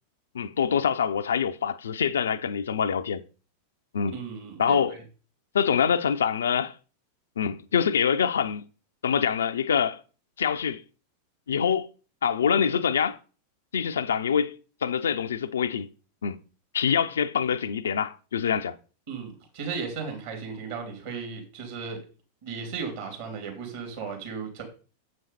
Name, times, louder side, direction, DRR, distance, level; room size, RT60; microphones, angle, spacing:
voice 1, 0.3-3.2 3.9-4.2 4.6-5.0 5.5-6.7 7.4-8.6 9.0-10.0 10.4-10.8 11.5-11.9 12.2-13.2 13.7-15.9 16.2-16.4 16.7-18.8, left 7 dB, 65° left, 0.4 m, -25 dB
voice 2, 4.1-5.0 19.1-22.0 22.4-24.6, right 5 dB, 55° right, 3.1 m, -35 dB
7.5 x 5.3 x 4.2 m
figure-of-eight pair, 90°, 0 cm